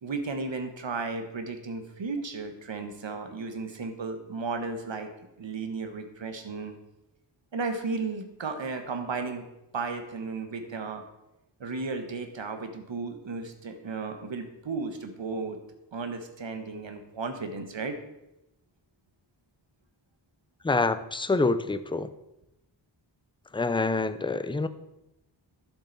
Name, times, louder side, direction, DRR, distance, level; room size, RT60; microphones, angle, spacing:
voice 1, 0.0-5.1 5.4-6.7 7.5-9.5 9.7-11.0 11.6-15.6 15.9-18.0, right 4 dB, 65° right, 7 dB, 1.3 m, -34 dB
voice 2, 20.6-22.1 23.5-24.7, left 3 dB, 10° left, 12 dB, 0.4 m, -26 dB
11.0 x 7.4 x 4.1 m, 0.91 s
wide cardioid pair, 80°, 47 cm